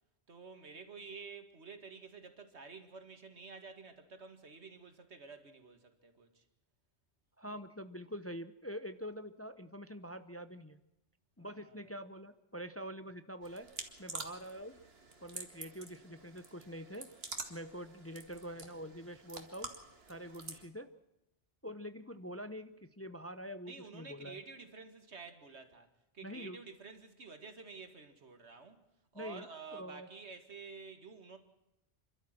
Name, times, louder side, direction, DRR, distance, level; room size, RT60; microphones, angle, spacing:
voice 1, 0.3-6.4 11.4-11.9 23.7-25.9 26.1-28.8 29.1-31.4, right 4 dB, 85° right, 8 dB, 2.2 m, -50 dB
voice 2, 7.4-10.8 11.4-13.7 14.0-14.8 15.2-17.1 17.5-19.7 20.1-20.9 21.6-24.4 26.2-26.6 29.1-29.5 29.7-30.1, equal, 15° left, 11 dB, 0.7 m, -45 dB
sound 1, 13.4-20.7, right 3 dB, 65° right, 2.2 m, -48 dB
27.5 x 12.5 x 7.6 m, 0.91 s
omnidirectional pair, 1.1 m